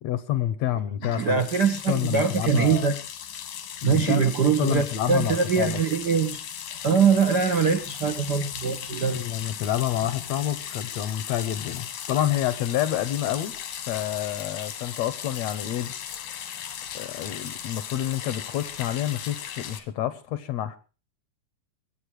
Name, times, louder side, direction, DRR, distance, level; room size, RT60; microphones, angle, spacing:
voice 1, 0.0-1.5 1.9-2.9 3.8-5.8 9.1-13.5 13.9-15.9 16.3-16.6 16.9-20.8, left 12 dB, 70° left, 13 dB, 1.8 m, -28 dB
sound 1, 1.0-19.8, left 9 dB, 85° left, 3.1 m, -37 dB
voice 2, 1.1-2.9 3.8-6.4 6.8-9.2, right 6 dB, 65° right, 5 dB, 1.0 m, -23 dB
22.0 x 8.7 x 4.7 m, 0.34 s
omnidirectional pair, 3.6 m